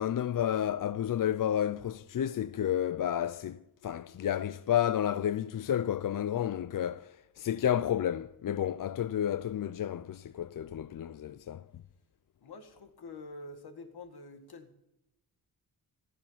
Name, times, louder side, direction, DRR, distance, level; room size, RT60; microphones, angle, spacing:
voice 1, 0.0-11.6, left 10 dB, 60° left, 0.5 m, -31 dB
voice 2, 12.4-14.8, left 3 dB, 80° left, 2.1 m, -47 dB
15.0 x 14.5 x 5.8 m
wide cardioid pair, 145°, 38 cm